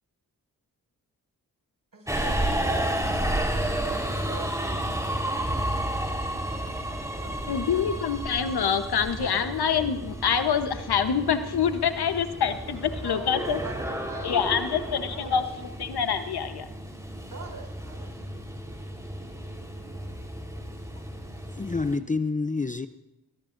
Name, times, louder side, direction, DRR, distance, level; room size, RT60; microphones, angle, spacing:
voice 1, 1.9-5.0 7.1-7.8 9.2-9.5 13.0-15.4 17.2-18.2, right 4 dB, 60° right, 0 dB, 6.3 m, -42 dB
Subway metro underground, 2.1-22.0, right 1 dB, 10° right, 4.1 m, -32 dB
voice 2, 7.5-13.6 14.2-15.4 15.8-16.7, left 7 dB, 75° left, 9 dB, 1.1 m, -26 dB
voice 3, 21.6-22.9, left 3 dB, 20° left, 11 dB, 0.6 m, -27 dB
21.0 x 19.5 x 2.6 m, 0.92 s
supercardioid pair, 40°, 39 cm